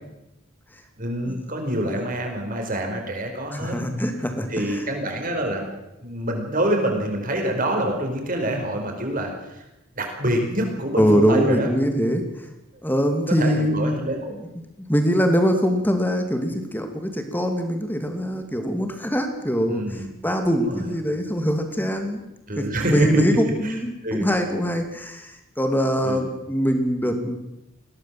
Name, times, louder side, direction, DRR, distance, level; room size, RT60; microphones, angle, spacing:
voice 1, 1.0-3.8 4.5-5.7 6.0-9.6 10.0-11.7 13.4-14.3 19.7-20.1 20.6-20.9 22.5-23.2 23.6-24.3 26.0-26.2, right 1 dB, 40° right, 3 dB, 5.2 m, -26 dB
voice 2, 3.5-4.8 11.0-12.5 12.8-14.0 14.3-14.4 14.9-22.2 22.6-27.4, equal, 10° left, 6 dB, 2.6 m, -23 dB
21.0 x 17.0 x 7.8 m, 0.93 s
head